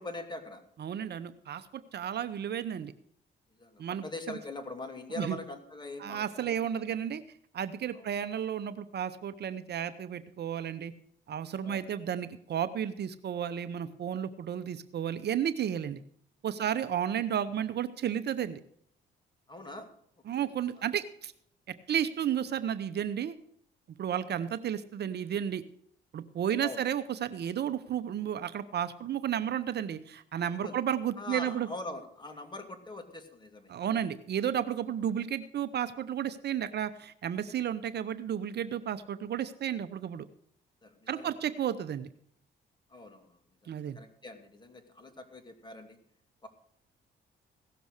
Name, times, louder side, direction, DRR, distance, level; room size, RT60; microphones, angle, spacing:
voice 1, 0.0-0.6 3.6-6.9 7.9-8.1 11.6-11.9 16.5-16.7 19.5-19.9 20.8-20.9 26.6-26.8 30.5-30.8 31.2-33.7 40.8-41.3 42.9-46.0 46.4-46.5, left 2 dB, 20° left, 5 dB, 2.5 m, -43 dB
voice 2, 0.8-2.9 3.8-4.4 5.2-5.4 6.0-7.2 7.5-10.9 11.3-16.0 16.4-18.6 20.3-21.3 21.7-23.4 24.0-25.6 26.1-31.7 33.7-40.2 41.1-42.1 43.7-44.0, right 9 dB, 55° right, 12 dB, 0.8 m, -33 dB
17.0 x 6.9 x 6.4 m, 0.67 s
cardioid pair, 90°, 20 cm